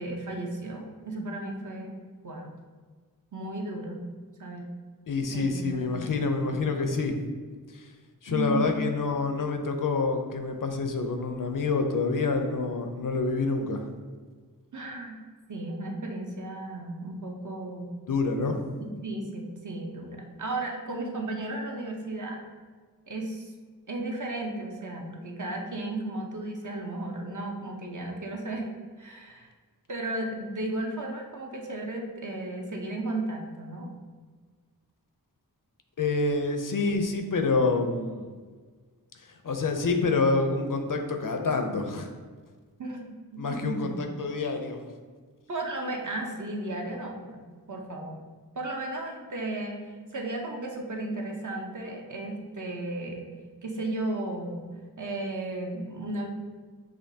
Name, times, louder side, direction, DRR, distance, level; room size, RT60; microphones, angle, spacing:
voice 1, 0.0-2.0 2.2-2.5 3.3-4.0 4.4-4.7 5.3-6.5 8.3-8.8 14.7-15.2 15.5-17.9 18.8-22.4 23.1-23.5 23.9-28.7 29.0-29.5 29.9-33.9 42.8-44.0 45.5-48.2 48.6-53.3 53.6-54.7 55.0-56.3, right 2 dB, 55° right, 1 dB, 0.7 m, -34 dB
voice 2, 5.1-7.2 7.7-7.8 8.2-13.8 18.1-18.6 36.0-38.3 39.4-42.1 43.4-44.8, left 3 dB, 60° left, 5 dB, 0.5 m, -27 dB
6.5 x 2.9 x 2.7 m, 1.5 s
wide cardioid pair, 70°, 37 cm